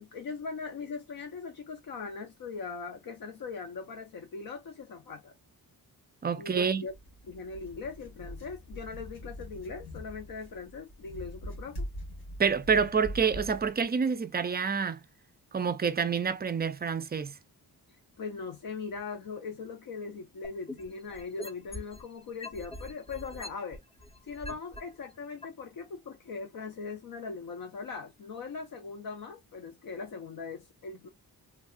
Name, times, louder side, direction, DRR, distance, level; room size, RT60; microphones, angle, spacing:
voice 1, 0.0-5.3 6.4-6.9 7.3-11.9 18.2-23.8 24.2-31.1, left 4 dB, 65° left, 0.6 m, -40 dB
voice 2, 6.2-6.9 12.4-15.0 15.5-17.4, right 6 dB, 25° right, 0.4 m, -28 dB
sound 1, 6.9-13.8, left 1 dB, 85° left, 1.7 m, -43 dB
sound 2, 20.4-22.0 22.4-24.8 25.4-25.5, left 1 dB, 15° left, 0.6 m, -42 dB
3.3 x 2.3 x 2.4 m
wide cardioid pair, 150°, 38 cm